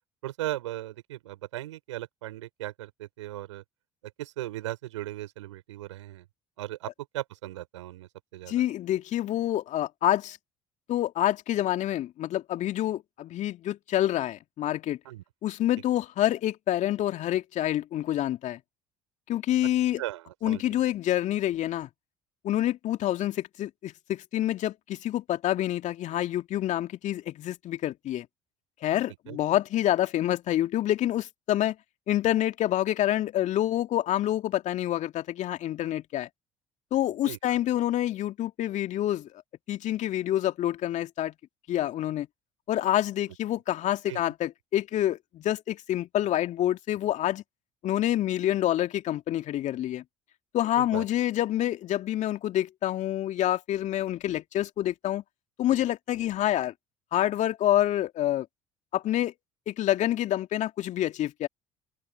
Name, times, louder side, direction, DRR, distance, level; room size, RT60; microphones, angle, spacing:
voice 1, 0.2-3.6 4.2-6.2 6.6-8.6 15.0-15.2 20.0-20.8 29.3-29.4 37.2-37.6 44.1-44.2 50.8-51.0, right 15 dB, 75° right, 7.5 m, -37 dB
voice 2, 8.5-10.4 10.9-15.0 15.4-18.6 19.3-20.0 20.4-21.9 22.4-28.3 28.8-31.8 32.1-36.3 36.9-39.3 39.7-41.3 41.7-42.3 42.7-47.4 47.8-50.0 50.5-55.2 55.6-56.7 57.1-58.5 58.9-59.3 59.7-61.5, left 13 dB, 50° left, 2.5 m, -27 dB
open air
figure-of-eight pair, 55°, 16 cm